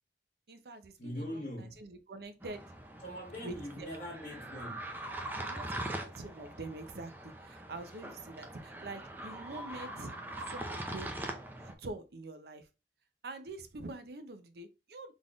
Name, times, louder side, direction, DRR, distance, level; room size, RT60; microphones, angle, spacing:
voice 1, 0.5-2.6 3.4-3.9 5.3-11.1 11.6-12.7 13.2-15.1, right 2 dB, 60° right, 0.6 m, -45 dB
voice 2, 1.0-1.8 3.0-5.0, equal, 40° left, 1.1 m, -42 dB
sound 1, 2.4-11.7, right 1 dB, 10° right, 0.4 m, -42 dB
4.0 x 3.4 x 2.4 m
head